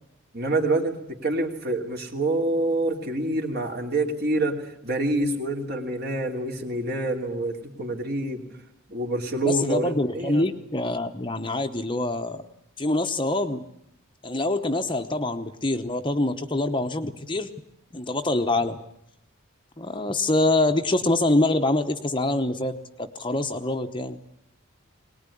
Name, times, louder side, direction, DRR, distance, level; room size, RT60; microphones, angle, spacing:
voice 1, 0.3-8.4 8.9-10.5, right 2 dB, 45° right, 3 dB, 3.0 m, -27 dB
voice 2, 9.4-12.4 12.8-13.6 14.2-17.5 17.9-18.8 19.8-22.7 23.0-24.2, left 2 dB, 20° left, 7 dB, 0.9 m, -25 dB
21.5 x 19.5 x 9.9 m, 0.79 s
head